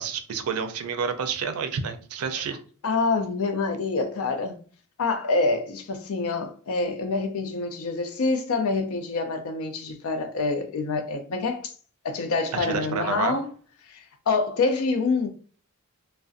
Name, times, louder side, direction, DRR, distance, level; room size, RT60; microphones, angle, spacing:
voice 1, 0.0-2.6 12.5-13.4, right 6 dB, 75° right, 0.4 m, -29 dB
voice 2, 2.8-4.6 5.0-11.7 12.0-13.5 13.9-15.3, left 3 dB, 70° left, 0.5 m, -26 dB
2.4 x 2.1 x 2.5 m
head